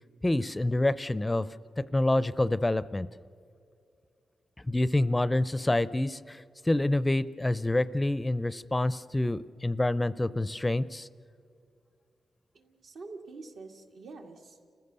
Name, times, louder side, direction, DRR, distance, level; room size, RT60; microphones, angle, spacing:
voice 1, 0.2-1.5 1.8-3.1 4.7-11.1, left 1 dB, 15° left, 16 dB, 0.4 m, -27 dB
voice 2, 12.5-14.6, right 3 dB, 80° right, 2 dB, 1.9 m, -46 dB
30.0 x 15.0 x 6.8 m, 2.3 s
cardioid pair, 95°, 0 cm